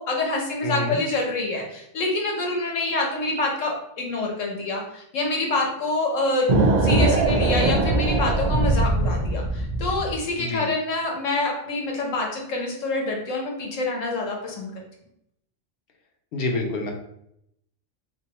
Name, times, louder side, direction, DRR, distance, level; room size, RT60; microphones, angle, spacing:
voice 1, 0.0-6.5 6.8-14.7, left 2 dB, 90° left, 0 dB, 1.2 m, -26 dB
voice 2, 0.6-1.0 10.4-10.7 16.3-16.9, left 2 dB, 60° left, 2 dB, 0.8 m, -27 dB
sound 1, 6.5-10.2, right 2 dB, 55° right, 0.5 m, -21 dB
3.4 x 2.7 x 2.9 m, 0.75 s
omnidirectional pair, 1.3 m